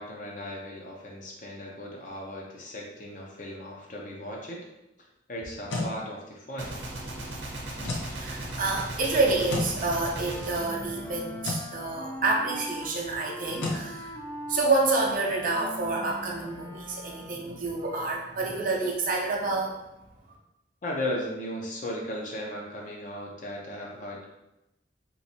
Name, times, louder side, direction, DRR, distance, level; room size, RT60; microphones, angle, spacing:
voice 1, 0.0-4.7 5.3-6.8 20.8-24.3, left 1 dB, 45° left, -1 dB, 0.6 m, -36 dB
sound 1, 5.4-6.0 7.8-8.1 9.5-9.8 11.4-11.7 13.6-13.9, left 2 dB, 80° left, 0.6 m, -31 dB
Gunshot gunfire, 6.6-11.8, right 1 dB, 75° right, 0.8 m, -38 dB
voice 2, 7.8-14.1 14.5-19.8, right 3 dB, 45° right, -2 dB, 0.6 m, -28 dB
Wind instrument woodwind instrument, 10.1-17.5, equal, 10° left, 0.3 m, -40 dB
3.1 x 3.1 x 2.7 m, 0.90 s
head